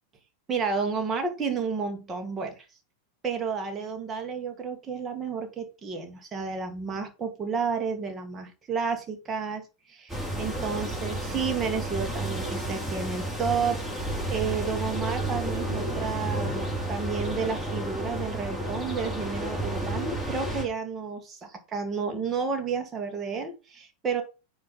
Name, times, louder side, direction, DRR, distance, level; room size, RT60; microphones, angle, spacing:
voice 1, 0.5-2.7 3.2-24.2, right 5 dB, 20° right, 1.8 m, -31 dB
sound 1, 10.1-20.6, right 1 dB, 5° right, 3.2 m, -31 dB
9.4 x 3.2 x 5.6 m
figure-of-eight pair, 90°, 0 cm